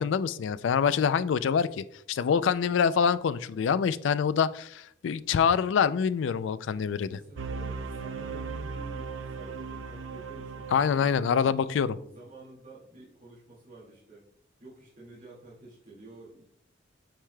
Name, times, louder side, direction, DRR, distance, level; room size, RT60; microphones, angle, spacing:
voice 1, 0.0-7.2 10.7-12.0, left 7 dB, 75° left, 16 dB, 0.3 m, -25 dB
voice 2, 7.0-14.3 14.6-16.4, right 2 dB, 45° right, -7 dB, 2.0 m, -50 dB
sound 1, 7.4-11.3, right 4 dB, 90° right, 0.6 m, -37 dB
8.9 x 4.8 x 2.2 m, 0.70 s
head